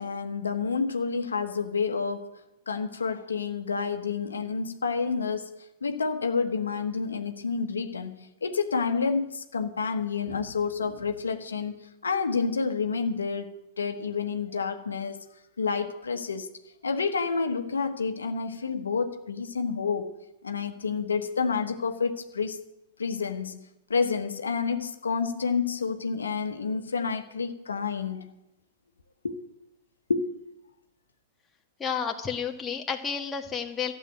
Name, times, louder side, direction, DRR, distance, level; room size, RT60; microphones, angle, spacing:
voice 1, 0.0-2.4 2.7-5.5 5.8-15.2 15.6-16.5 16.8-20.1 20.4-22.6 23.0-23.6 23.9-28.3 29.2-29.4 30.1-30.3, left 5 dB, 85° left, 7 dB, 1.2 m, -29 dB
voice 2, 31.8-33.9, left 6 dB, 20° left, 3 dB, 1.8 m, -31 dB
13.0 x 7.7 x 9.3 m, 0.89 s
hypercardioid pair, 105°, 0 cm